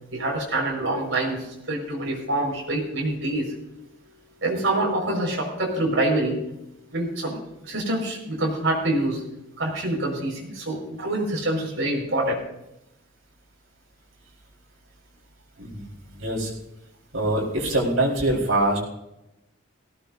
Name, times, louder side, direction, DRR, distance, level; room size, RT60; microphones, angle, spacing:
voice 1, 0.1-3.5 4.4-6.4 6.9-9.2 9.6-12.3, right 1 dB, 65° right, -1 dB, 5.2 m, -26 dB
voice 2, 16.1-16.5 17.1-18.8, right 1 dB, 85° right, -2 dB, 4.7 m, -24 dB
18.5 x 17.0 x 2.7 m, 0.87 s
head